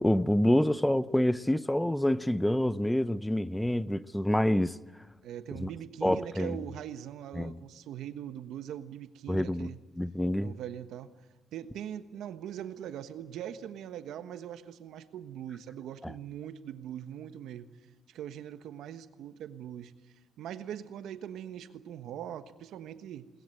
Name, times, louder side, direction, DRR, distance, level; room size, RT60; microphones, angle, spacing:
voice 1, 0.0-4.8 5.6-5.7 6.0-6.6 7.4-7.5 9.3-9.7 10.0-10.6 16.0-16.1, left 1 dB, 5° left, 0.7 m, -27 dB
voice 2, 5.2-9.8 10.4-11.1 11.5-17.7 18.1-23.3, right 10 dB, 80° right, 1.3 m, -41 dB
21.5 x 19.5 x 9.0 m
cardioid pair, 90°, 0 cm